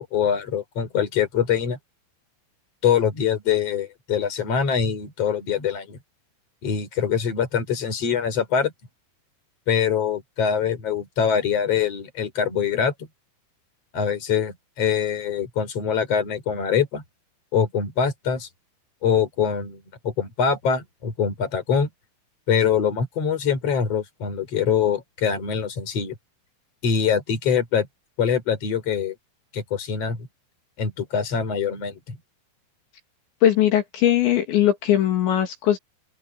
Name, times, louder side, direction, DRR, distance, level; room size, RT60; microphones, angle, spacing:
voice 1, 0.0-1.8 2.8-6.0 6.6-8.7 9.7-12.9 13.9-17.0 17.5-18.5 19.0-21.9 22.5-26.1 26.8-27.9 28.2-29.1 29.5-30.3 30.8-32.2, left 7 dB, 35° left, 4.9 m, -24 dB
voice 2, 33.4-35.8, left 11 dB, 70° left, 4.7 m, -20 dB
open air
omnidirectional pair, 5.5 m